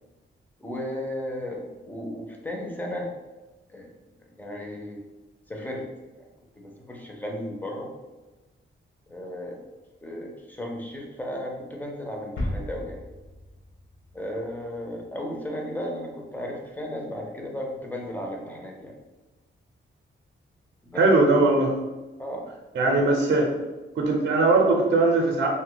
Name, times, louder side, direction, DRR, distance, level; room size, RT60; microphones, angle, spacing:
voice 1, 0.6-3.1 3.7-3.9 4.4-5.0 5.5-5.8 6.2-6.3 6.6-7.9 9.1-9.6 10.0-13.0 14.1-19.0 20.8-21.0 22.2-22.4 22.8-23.1, left 1 dB, 10° left, 0 dB, 0.4 m, -34 dB
sound 1, 12.4-15.0, left 1 dB, 70° left, 0.7 m, -35 dB
voice 2, 21.0-21.7 22.7-23.5 24.0-25.5, right 2 dB, 60° right, 0 dB, 0.5 m, -20 dB
2.6 x 2.1 x 3.8 m, 1.1 s
wide cardioid pair, 175°, 21 cm